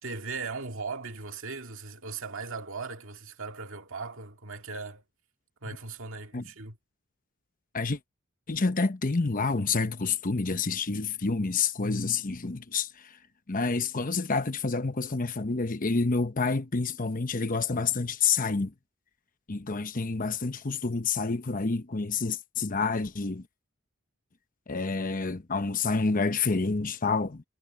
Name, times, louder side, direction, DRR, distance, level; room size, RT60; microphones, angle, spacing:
voice 1, 0.0-5.0 5.6-6.8, right 4 dB, 65° right, 2.2 m, -38 dB
voice 2, 8.5-13.1 13.5-18.7 19.5-23.4 24.7-27.4, left 4 dB, 40° left, 0.9 m, -28 dB
head